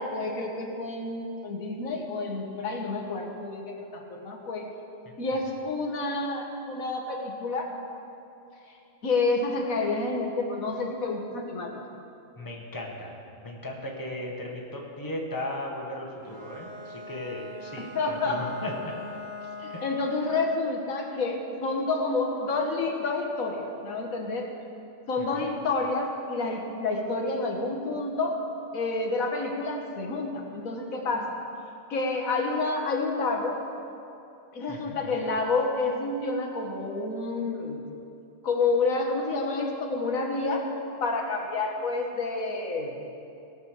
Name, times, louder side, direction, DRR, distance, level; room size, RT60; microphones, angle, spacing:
voice 1, 0.0-4.7 5.2-7.7 9.0-11.8 17.8-18.5 19.6-24.5 25.1-28.4 28.7-31.3 31.9-33.6 34.5-37.8 38.4-40.7 41.0-43.0, left 3 dB, 90° left, 1 dB, 1.7 m, -29 dB
voice 2, 12.4-19.0 19.7-19.9 25.2-25.6 34.7-35.2, left 1 dB, 15° left, -1 dB, 1.5 m, -37 dB
Bowed string instrument, 16.2-20.5, left 1 dB, 65° right, 2.7 m, -41 dB
18.0 x 6.4 x 6.5 m, 2.7 s
omnidirectional pair, 1.4 m